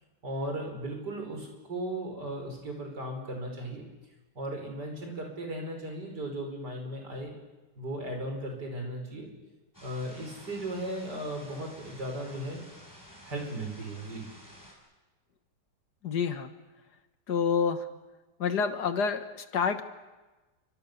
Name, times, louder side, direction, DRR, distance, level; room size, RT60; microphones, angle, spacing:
voice 1, 0.2-3.8 4.4-7.3 7.8-9.3 9.8-12.6 13.3-14.2, right 1 dB, 75° right, 2 dB, 5.7 m, -36 dB
sound 1, 9.7-14.7, equal, 10° left, 5.8 m, -51 dB
voice 2, 16.0-16.5 17.3-17.9 18.4-19.8, left 6 dB, 70° left, 9 dB, 2.0 m, -28 dB
28.5 x 25.0 x 6.9 m, 1.2 s
omnidirectional pair, 1.8 m